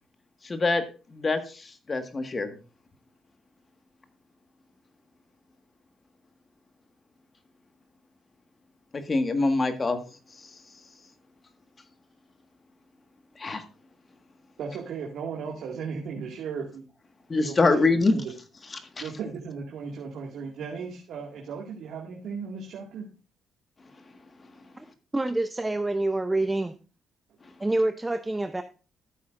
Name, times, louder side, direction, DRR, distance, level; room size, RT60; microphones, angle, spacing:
voice 1, 0.4-0.8 1.1-2.6 8.9-10.0 10.4-10.5 13.4-13.6 17.3-18.2 18.7-19.0, left 3 dB, 30° left, 8 dB, 1.7 m, -25 dB
voice 2, 14.6-16.8 17.4-17.8 18.1-18.3 19.0-23.1, right 5 dB, 75° right, -1 dB, 2.1 m, -36 dB
voice 3, 25.1-26.7 27.6-28.6, right 2 dB, 15° right, 9 dB, 0.6 m, -26 dB
13.5 x 8.4 x 2.6 m, 0.35 s
cardioid pair, 90°, 0 cm